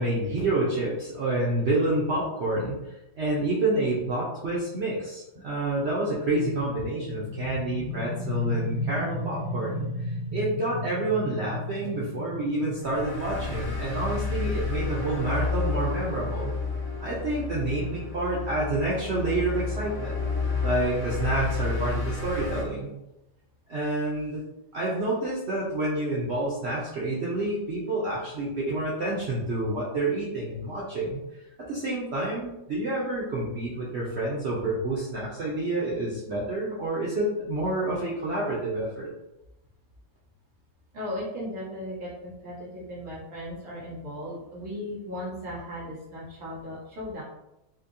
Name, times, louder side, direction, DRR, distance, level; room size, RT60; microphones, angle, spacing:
voice 1, 0.0-2.8 3.2-16.5 17.0-20.2 20.6-22.9 23.7-24.4 24.7-31.2 31.6-39.1, right 2 dB, 85° right, -6 dB, 0.5 m, -28 dB
sound 1, 6.4-17.9, left 1 dB, 80° left, 1.3 m, -35 dB
sound 2, 12.8-22.6, left 4 dB, 50° left, 1.9 m, -31 dB
voice 2, 40.9-47.2, left 1 dB, 45° right, -8 dB, 1.7 m, -37 dB
4.0 x 2.6 x 2.6 m, 0.93 s
omnidirectional pair, 2.0 m